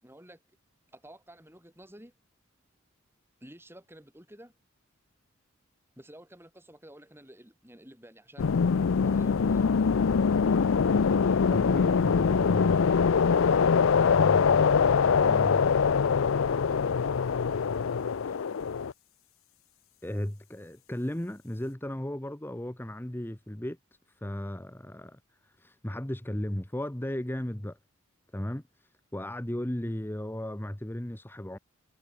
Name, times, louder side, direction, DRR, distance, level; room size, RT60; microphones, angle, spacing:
voice 1, 0.0-0.4 0.9-2.1 3.4-4.5 6.0-8.5 9.0-9.8, right 1 dB, 10° right, 7.8 m, -51 dB
sound 1, 8.4-18.9, left 5 dB, 65° left, 0.5 m, -23 dB
voice 2, 11.5-13.1 14.0-15.7 20.0-23.8 24.2-27.8 28.3-31.6, left 1 dB, 10° left, 0.9 m, -36 dB
head